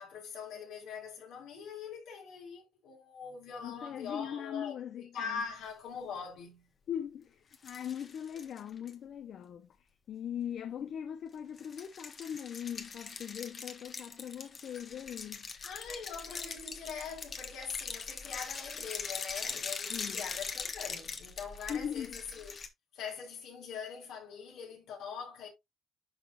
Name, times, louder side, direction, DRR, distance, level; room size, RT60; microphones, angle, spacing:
voice 1, 0.0-4.8 5.1-6.7 15.6-22.6 22.9-25.5, left 6 dB, 85° left, 4.1 m, -43 dB
voice 2, 3.6-5.4 6.9-15.5 19.9-20.2 21.7-22.1, left 9 dB, 65° left, 0.9 m, -40 dB
sound 1, 7.5-8.9 11.6-22.7, left 5 dB, 45° left, 1.4 m, -42 dB
11.5 x 4.0 x 2.5 m
cardioid pair, 90°, 0 cm